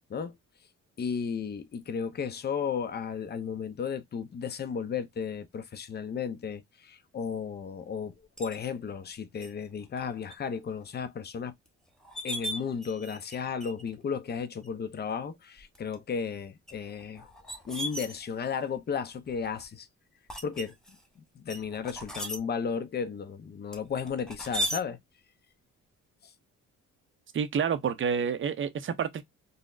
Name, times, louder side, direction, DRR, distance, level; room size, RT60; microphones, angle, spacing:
voice 1, 1.0-8.1 8.4-11.5 12.2-17.3 17.7-19.9 20.4-20.7 21.4-25.0, left 6 dB, 35° left, 0.6 m, -34 dB
sound 1, 8.4-8.6 9.4-9.5 10.0-10.3 10.8-10.9 11.7-11.8 12.0-13.4 13.6-13.9 14.6-14.7 15.6-16.0 16.7-18.6 19.3-19.6 20.3-21.0 21.5-22.4 23.7-24.8, equal, ahead, 0.8 m, -36 dB
voice 2, 27.3-29.2, right 7 dB, 40° right, 0.6 m, -29 dB
3.9 x 2.1 x 2.4 m
cardioid pair, 90°, 30 cm